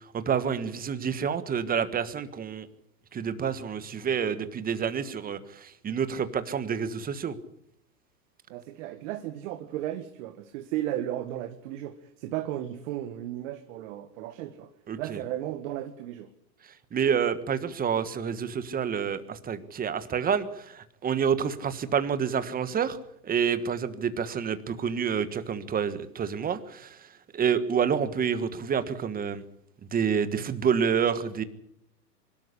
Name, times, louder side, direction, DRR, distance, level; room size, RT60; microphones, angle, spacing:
voice 1, 0.1-2.7 3.1-7.4 14.9-15.2 16.9-23.0 23.2-27.1 27.3-29.4 29.9-31.4, right 7 dB, 15° right, 12 dB, 1.5 m, -28 dB
voice 2, 8.5-14.7 15.0-16.3, right 13 dB, 50° right, 7 dB, 1.9 m, -35 dB
24.0 x 13.0 x 9.9 m, 0.77 s
hypercardioid pair, 125°, 49 cm